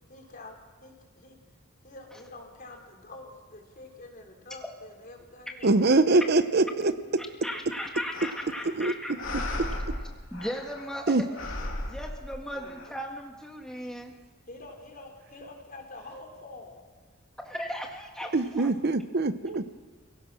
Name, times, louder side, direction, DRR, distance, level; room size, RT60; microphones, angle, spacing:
voice 1, 0.0-1.4 1.8-5.8 12.5-12.8 14.5-16.8, left 2 dB, 45° left, 2 dB, 4.1 m, -47 dB
voice 2, 5.6-6.9 8.8-8.9 11.1-11.2 18.3-19.6, right 2 dB, 55° right, 11 dB, 0.8 m, -23 dB
voice 3, 7.2-9.1 10.3-11.3 11.8-14.1 17.4-18.7, equal, 5° left, 1 dB, 1.8 m, -37 dB
sound 1, 8.1-8.8 9.1-11.0 11.3-12.9, left 1 dB, 70° left, 3.2 m, -36 dB
27.5 x 17.0 x 6.3 m, 1.4 s
head